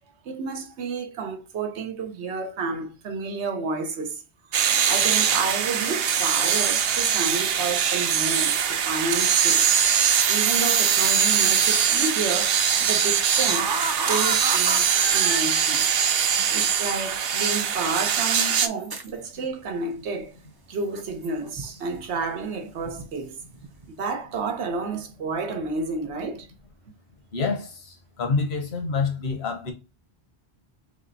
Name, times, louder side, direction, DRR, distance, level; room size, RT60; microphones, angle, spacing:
voice 1, 0.2-4.2 4.6-9.7 10.3-15.9 16.5-20.3 20.7-23.4 23.9-26.5, right 4 dB, 90° right, 1.1 m, -31 dB
sound 1, 4.5-18.7, right 8 dB, 70° right, 0.8 m, -22 dB
sound 2, 13.2-15.4 16.6-16.7 17.4-17.5 18.5-19.1 20.9-21.7 21.9-22.3 22.8-23.1 23.5-23.8, right 3 dB, 30° right, 0.4 m, -31 dB
voice 2, 27.3-29.7, left 4 dB, 70° left, 1.2 m, -27 dB
3.5 x 3.2 x 4.0 m
omnidirectional pair, 1.1 m